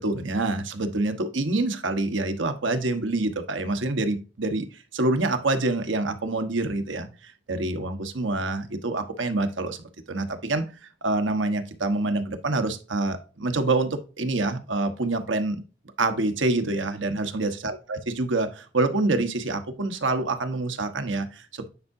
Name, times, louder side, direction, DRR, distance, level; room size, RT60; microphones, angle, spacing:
voice 1, 0.0-9.8 10.1-10.6 11.0-15.6 16.0-21.7, right 2 dB, 90° right, 8 dB, 1.1 m, -26 dB
9.4 x 4.7 x 2.6 m, 0.33 s
head